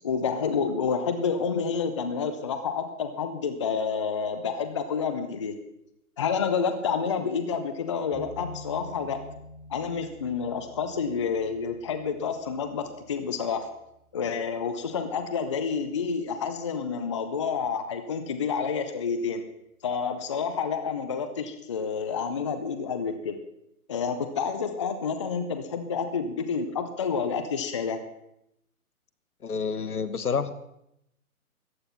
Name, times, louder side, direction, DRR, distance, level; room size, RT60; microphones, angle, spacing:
voice 1, 0.0-5.6 6.2-9.2 9.7-13.7 14.1-19.4 19.8-23.4 23.9-28.0, left 6 dB, 20° left, 9 dB, 0.5 m, -29 dB
sound 1, 8.1-15.2, left 1 dB, 5° right, 1.5 m, -48 dB
voice 2, 29.4-30.5, left 6 dB, 80° left, 13 dB, 1.3 m, -28 dB
14.0 x 9.8 x 5.7 m, 0.80 s
hypercardioid pair, 140°, 44 cm